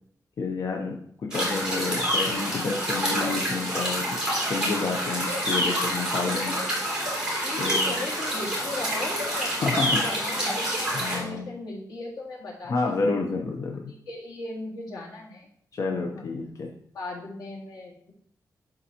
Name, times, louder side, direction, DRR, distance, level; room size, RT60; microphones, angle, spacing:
voice 1, 0.4-6.6 7.6-7.9 9.6-10.0 10.9-11.5 12.7-13.9 15.7-16.7, left 4 dB, 50° left, 2 dB, 0.7 m, -29 dB
sound 1, 1.3-11.2, equal, 10° right, 2.7 m, -27 dB
voice 2, 6.2-6.8 7.4-10.6 10.9-13.0 13.9-15.5 15.9-16.2 16.9-18.1, left 2 dB, 90° left, -2 dB, 1.9 m, -38 dB
11.0 x 3.9 x 2.9 m, 0.65 s
wide cardioid pair, 155°, 7 cm